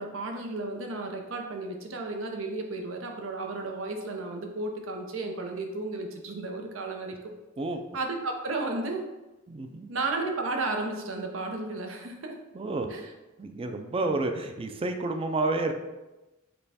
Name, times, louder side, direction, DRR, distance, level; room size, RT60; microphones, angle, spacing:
voice 1, 0.0-7.3 7.9-9.1 9.9-12.3 12.9-13.1, right 2 dB, 85° right, 3 dB, 0.7 m, -33 dB
voice 2, 9.5-9.9 12.5-12.9 13.4-15.7, right 2 dB, 30° right, 6 dB, 0.4 m, -30 dB
5.3 x 2.2 x 4.1 m, 1.1 s
head